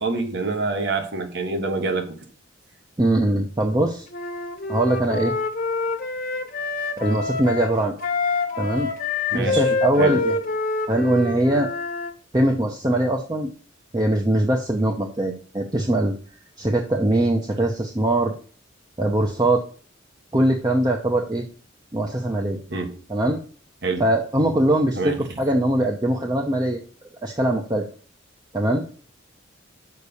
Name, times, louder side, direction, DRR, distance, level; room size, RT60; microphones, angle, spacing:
voice 1, 0.0-2.1 9.3-9.7 10.0-10.2 22.7-22.9 23.8-24.0 24.9-25.2, right 3 dB, 60° right, 1.4 m, -26 dB
voice 2, 3.0-4.1 4.7-5.3 7.0-8.0 8.6-8.9 9.3-10.4 10.9-11.7 12.3-13.5 13.9-16.2 16.6-18.3 19.0-19.6 20.3-21.4 21.9-22.6 23.1-23.4 24.0-26.8 27.2-27.9 28.5-28.8, right 1 dB, 20° right, 0.8 m, -21 dB
Wind instrument woodwind instrument, 4.1-12.1, left 4 dB, 45° left, 1.1 m, -26 dB
6.6 x 5.4 x 6.9 m
head